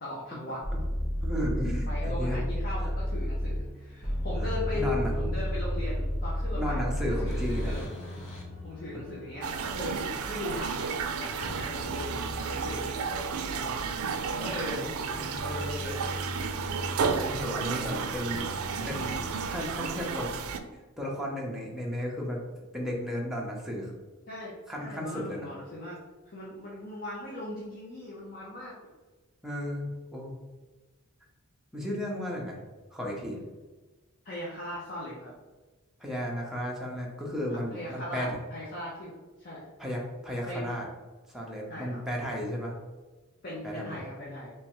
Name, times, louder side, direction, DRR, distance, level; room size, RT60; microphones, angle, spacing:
voice 1, 0.0-0.6 1.9-7.9 8.6-13.8 14.3-14.9 15.4-16.0 17.9-18.2 24.3-26.0 26.3-28.7 34.2-35.3 37.7-39.6 40.5-40.7 41.7-42.0 43.4-44.5, left 1 dB, 45° left, -6 dB, 0.7 m, -38 dB
sound 1, 0.6-19.5, equal, 65° left, 1.2 m, -34 dB
voice 2, 1.2-2.4 2.8-2.9 4.3-5.1 6.6-7.7 8.9-9.0 17.3-18.5 18.9-19.2 19.5-20.3 21.0-22.4 22.7-23.9 24.7-25.5 29.4-30.4 31.7-32.6 32.9-33.4 36.0-38.4 39.8-40.8 41.3-42.8 43.6-44.0, equal, ahead, -3 dB, 0.7 m, -34 dB
sound 2, 9.4-20.6, right 5 dB, 85° right, 0.4 m, -32 dB
3.4 x 3.1 x 3.0 m, 1.2 s
head